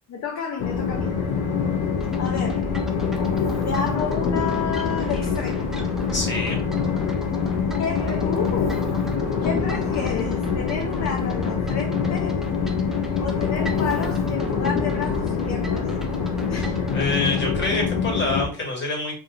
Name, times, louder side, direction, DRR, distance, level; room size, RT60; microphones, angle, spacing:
voice 1, 0.1-1.1 2.2-2.7 3.6-5.7 7.8-8.9 9.4-12.4 13.1-15.9 16.5-16.9, left 6 dB, 45° left, 0.7 m, -30 dB
Train, 0.6-18.5, left 5 dB, 80° left, 0.9 m, -25 dB
sound 1, 2.0-17.8, equal, ahead, 0.7 m, -38 dB
voice 2, 6.1-6.6 16.9-19.1, left 2 dB, 30° left, 1.9 m, -26 dB
3.3 x 2.5 x 4.0 m
cardioid pair, 110°, 37 cm